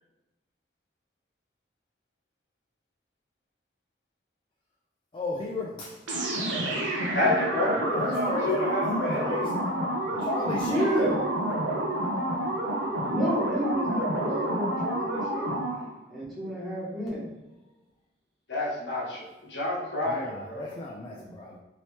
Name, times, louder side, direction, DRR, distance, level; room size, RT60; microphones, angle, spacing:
voice 1, 5.1-6.0 7.8-9.5 10.2-11.1 20.1-21.6, left 2 dB, 25° left, -3 dB, 0.3 m, -34 dB
sound 1, 6.1-15.9, right 1 dB, 90° right, 0.7 m, -29 dB
voice 2, 7.0-9.3 18.5-20.7, left 2 dB, 80° left, -4 dB, 1.0 m, -29 dB
voice 3, 10.4-11.2 13.1-15.7 16.1-17.3 21.1-21.5, equal, ahead, -9 dB, 1.1 m, -31 dB
2.9 x 2.9 x 3.2 m, 1.1 s
head